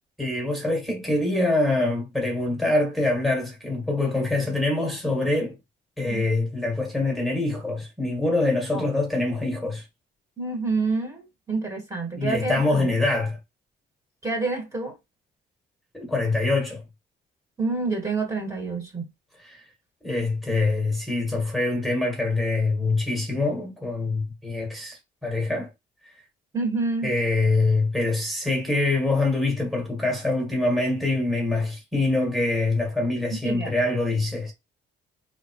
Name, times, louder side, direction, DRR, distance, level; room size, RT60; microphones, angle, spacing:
voice 1, 0.2-5.6 6.0-9.8 12.2-13.4 15.9-16.8 19.4-19.6 20.0-25.7 27.0-34.5, left 2 dB, ahead, 1.7 m, -24 dB
voice 2, 10.4-12.9 14.2-15.0 17.6-19.1 26.5-27.1 33.4-33.7, right 3 dB, 15° right, 1.8 m, -28 dB
3.6 x 3.5 x 3.1 m
cardioid pair, 90°, 20 cm